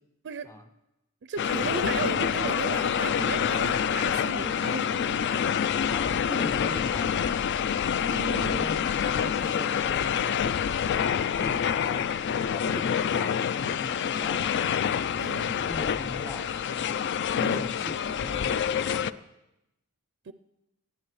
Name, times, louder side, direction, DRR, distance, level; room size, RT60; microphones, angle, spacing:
voice 1, 1.2-5.3 5.7-5.8 8.0-8.6 15.2-15.5 17.3-17.6 20.3-20.4, right 5 dB, 55° right, 9 dB, 0.4 m, -35 dB
sound 1, 1.4-19.1, left 8 dB, 55° left, 0.4 m, -27 dB
voice 2, 5.9-7.5 8.4-12.1 12.4-14.8 15.3-16.9 17.4-19.3, equal, 10° left, 8 dB, 1.0 m, -41 dB
20.5 x 14.5 x 3.2 m, 0.91 s
head